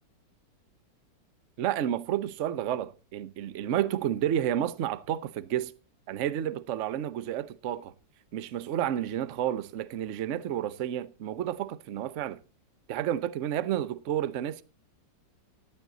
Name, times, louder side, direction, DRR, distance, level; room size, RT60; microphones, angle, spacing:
voice 1, 1.6-5.7 6.1-7.9 8.3-12.4 12.9-14.6, right 11 dB, 60° right, 0.8 m, -30 dB
14.0 x 11.0 x 3.9 m
omnidirectional pair, 2.1 m